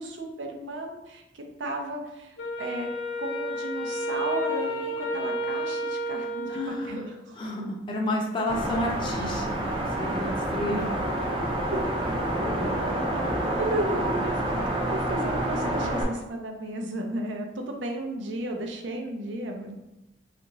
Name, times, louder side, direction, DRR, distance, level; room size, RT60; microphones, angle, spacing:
voice 1, 0.0-2.9 3.2-7.4 11.7-11.8 13.6-14.6 14.8-19.8, right 1 dB, 85° right, 3 dB, 0.6 m, -34 dB
Wind instrument woodwind instrument, 2.4-7.0, equal, 80° left, 0.7 m, -31 dB
voice 2, 6.5-7.1 7.3-10.9 12.4-12.8, left 1 dB, 25° left, -2 dB, 0.4 m, -31 dB
sound 1, 8.5-16.0, right 1 dB, 30° right, 0.5 m, -28 dB
3.4 x 2.5 x 3.0 m, 0.97 s
head